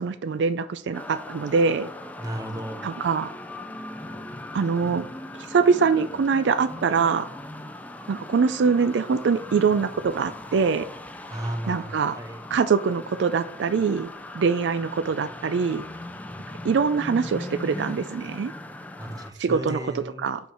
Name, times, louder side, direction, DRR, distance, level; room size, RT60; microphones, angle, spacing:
voice 1, 0.0-1.9 2.8-3.3 4.5-5.0 5.5-7.3 8.1-10.8 11.7-12.2 12.5-14.1 14.3-15.8 16.6-18.5 19.4-20.4, right 5 dB, 80° right, 12 dB, 0.4 m, -23 dB
sound 1, 0.9-19.3, left 1 dB, 10° left, 0.4 m, -39 dB
voice 2, 2.2-2.9 11.3-12.4 19.0-20.3, right 1 dB, 20° right, 5 dB, 0.8 m, -34 dB
5.6 x 4.4 x 4.9 m, 0.63 s
head